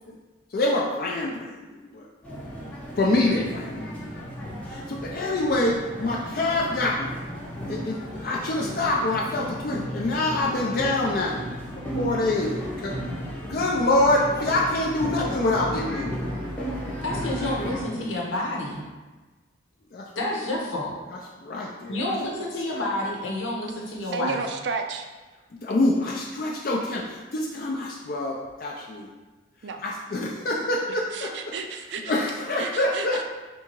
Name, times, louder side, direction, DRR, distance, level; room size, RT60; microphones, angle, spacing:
voice 1, 0.5-2.0 3.0-3.9 4.6-7.1 7.7-11.4 12.0-12.9 13.5-16.2 18.0-18.1 19.9-20.1 21.4-22.0 25.6-29.1 29.8-31.4 32.1-33.2, left 2 dB, 50° left, -2 dB, 0.4 m, -25 dB
sound 1, 2.2-17.8, equal, 5° left, 0.6 m, -34 dB
voice 2, 17.0-18.9 20.1-21.0 21.9-24.4, left 1 dB, 85° left, -2 dB, 0.9 m, -29 dB
voice 3, 24.1-25.1 29.6-29.8 31.1-32.1 32.6-33.2, right 5 dB, 65° right, 5 dB, 0.4 m, -32 dB
3.5 x 2.8 x 4.4 m, 1.3 s
head